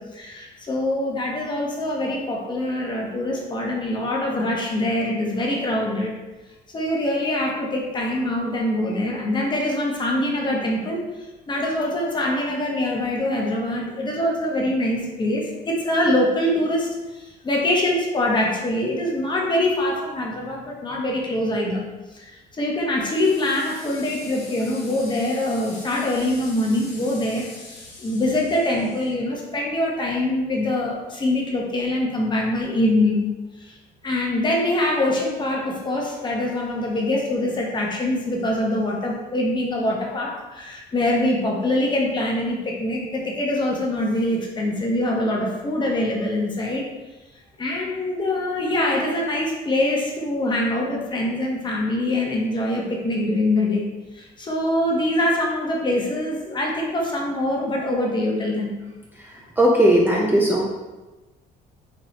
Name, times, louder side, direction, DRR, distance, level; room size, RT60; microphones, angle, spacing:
voice 1, 0.1-6.2 6.7-11.0 11.5-16.9 17.1-21.8 22.1-33.3 33.6-33.8 34.0-46.9 47.6-53.9 54.2-58.8, left 1 dB, 25° left, -1 dB, 0.8 m, -24 dB
sound 1, 23.0-29.1, left 3 dB, 85° left, 1.1 m, -43 dB
voice 2, 59.2-60.7, right 1 dB, 10° right, -3 dB, 0.4 m, -18 dB
4.2 x 2.3 x 3.0 m, 1.1 s
cardioid pair, 110°, 17 cm